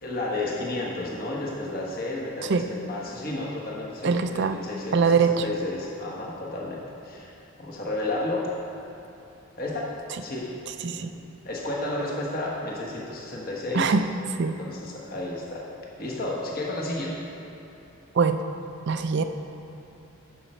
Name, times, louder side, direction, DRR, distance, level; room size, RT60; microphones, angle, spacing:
voice 1, 0.0-8.5 9.6-9.9 10.2-10.4 10.8-13.9 14.6-15.6 16.0-17.1, left 2 dB, 40° left, -3 dB, 1.3 m, -32 dB
voice 2, 4.0-4.6 4.9-5.4 10.8-11.1 13.7-14.1 14.4-14.6 18.1-18.4 18.9-19.2, right 5 dB, 50° right, 9 dB, 0.4 m, -22 dB
11.0 x 6.3 x 4.4 m, 2.8 s
head